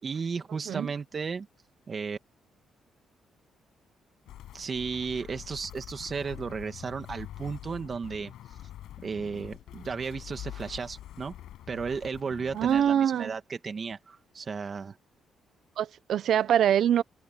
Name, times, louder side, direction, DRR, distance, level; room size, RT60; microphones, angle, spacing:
voice 1, 0.0-1.5 1.9-2.2 4.5-8.3 9.0-11.3 11.7-15.0, right 5 dB, 40° right, 2.4 m, -34 dB
sound 1, 4.3-12.9, left 12 dB, 80° left, 6.4 m, -45 dB
voice 2, 12.5-13.3 15.8-17.0, right 9 dB, 70° right, 1.0 m, -24 dB
cardioid pair, 90°, 0 cm